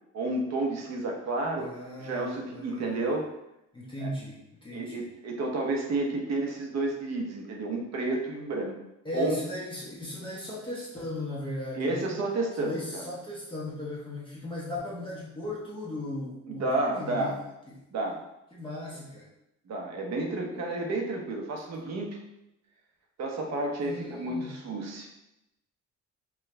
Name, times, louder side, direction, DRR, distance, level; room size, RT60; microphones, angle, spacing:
voice 1, 0.1-1.7 2.0-3.3 4.0-4.1 4.7-8.7 9.1-9.4 11.7-13.1 16.5-17.3 17.9-18.2 19.7-22.2 23.2-25.1, right 2 dB, 60° right, 1 dB, 0.9 m, -31 dB
voice 2, 1.6-2.9 3.7-5.0 9.0-12.1 12.6-17.3 17.7-17.8 18.5-19.3 20.5-20.6 23.8-24.5, left 1 dB, 15° left, -8 dB, 1.0 m, -37 dB
4.6 x 2.4 x 3.2 m, 0.87 s
cardioid pair, 110°, 31 cm